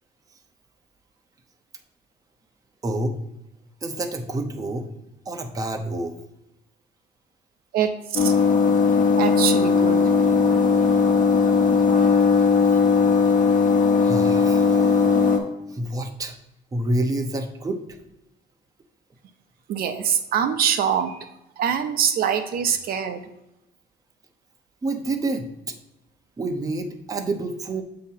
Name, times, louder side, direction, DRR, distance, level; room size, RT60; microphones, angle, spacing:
voice 1, 2.8-3.2 3.8-4.9 5.3-6.1 13.9-14.8 15.7-16.4 16.7-17.8 24.8-25.5 26.4-27.8, right 2 dB, 20° right, 4 dB, 0.7 m, -28 dB
voice 2, 7.7-8.3 9.2-10.0 19.7-21.3 21.6-23.2, right 8 dB, 60° right, 6 dB, 0.6 m, -24 dB
sound 1, 8.1-15.4, left 5 dB, 50° left, 1.1 m, -18 dB
7.0 x 2.9 x 5.6 m, 0.87 s
cardioid pair, 110°, 17 cm